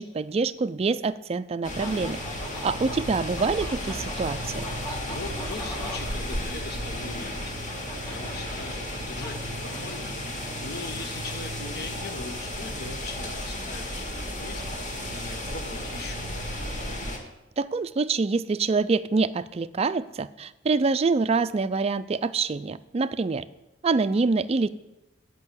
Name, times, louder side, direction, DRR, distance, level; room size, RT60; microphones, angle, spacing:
voice 1, 0.0-2.2 2.6-4.6 17.6-23.5 23.8-24.7, right 4 dB, 35° right, 13 dB, 0.4 m, -26 dB
sound 1, 1.6-17.2, left 1 dB, 45° left, 2.0 m, -33 dB
sound 2, 1.6-12.3, equal, 20° left, 1.6 m, -43 dB
voice 2, 5.1-7.7 8.0-16.3, left 3 dB, 60° left, 7 dB, 1.2 m, -41 dB
10.5 x 5.5 x 8.1 m, 0.94 s
head